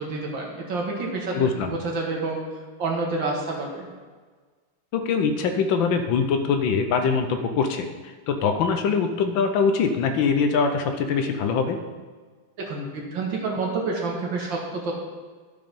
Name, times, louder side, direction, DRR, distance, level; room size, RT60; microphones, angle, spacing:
voice 1, 0.0-1.3 1.6-2.4 2.8-3.9 12.6-14.9, right 3 dB, 70° right, -1 dB, 2.2 m, -28 dB
voice 2, 1.3-1.7 4.9-11.8, left 5 dB, 80° left, 6 dB, 1.5 m, -23 dB
12.0 x 5.9 x 5.3 m, 1.5 s
omnidirectional pair, 2.2 m